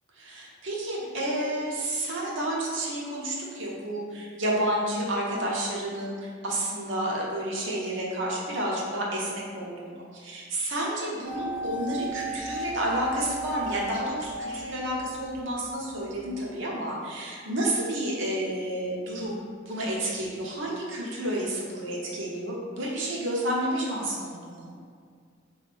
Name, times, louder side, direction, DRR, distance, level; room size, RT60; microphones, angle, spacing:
voice 1, 0.2-19.4 19.7-24.7, right 1 dB, 75° right, -4 dB, 0.8 m, -30 dB
sound 1, 11.3-15.4 15.6-15.7, right 1 dB, 10° left, 0.5 m, -35 dB
3.4 x 3.1 x 3.4 m, 2.1 s
head